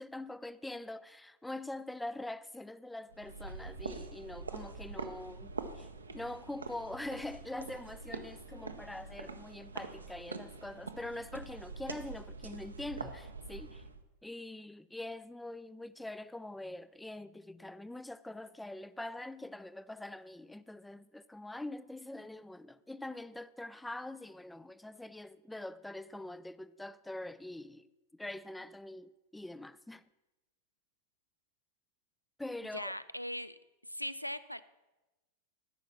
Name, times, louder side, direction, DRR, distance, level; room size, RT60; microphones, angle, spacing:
voice 1, 0.0-13.8 14.2-27.9 28.1-30.0 32.4-32.9, left 1 dB, 5° left, 0.3 m, -44 dB
sound 1, 3.1-14.0, right 4 dB, 75° right, 0.7 m, -45 dB
voice 2, 32.7-33.6 33.8-34.6, equal, 90° left, 0.3 m, -39 dB
13.0 x 5.6 x 6.1 m
figure-of-eight pair, 90°, 0 cm